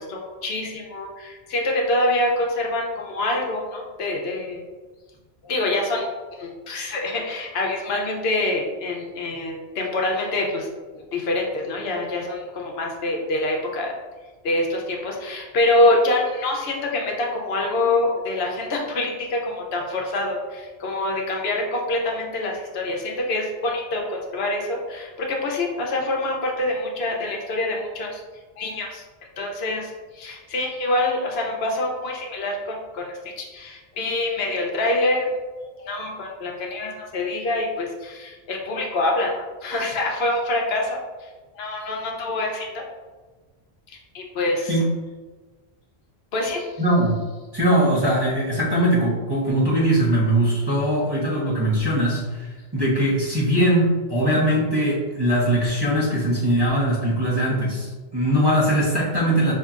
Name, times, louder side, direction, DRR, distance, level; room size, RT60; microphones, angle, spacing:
voice 1, 0.0-4.6 5.4-10.7 10.9-13.9 14.4-28.2 28.6-29.0 29.4-35.3 35.8-39.3 39.6-41.3 41.6-42.8 43.9-44.7 46.3-46.8, left 2 dB, 75° left, 0 dB, 0.9 m, -25 dB
voice 2, 46.8-47.2 47.5-59.5, right 1 dB, 25° right, -6 dB, 0.9 m, -21 dB
5.5 x 2.7 x 2.4 m, 1.3 s
omnidirectional pair, 1.1 m